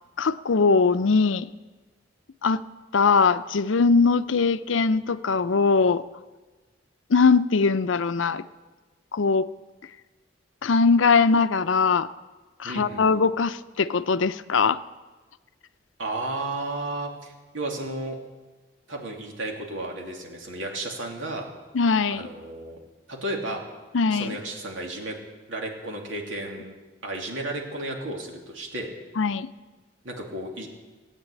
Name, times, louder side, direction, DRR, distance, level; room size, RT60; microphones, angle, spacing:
voice 1, 0.2-1.5 2.4-2.6 2.9-6.0 7.1-8.4 9.1-9.5 10.6-12.1 12.6-14.8 21.7-22.3 23.9-24.4 29.2-29.5, left 4 dB, 85° left, 13 dB, 0.6 m, -21 dB
voice 2, 12.6-13.1 16.0-18.2 18.9-21.5 22.1-22.8 23.1-23.6 24.1-25.2 25.5-26.7 27.0-28.9 30.0-30.7, right 2 dB, 85° right, 1 dB, 2.8 m, -33 dB
17.5 x 9.0 x 8.4 m, 1.3 s
head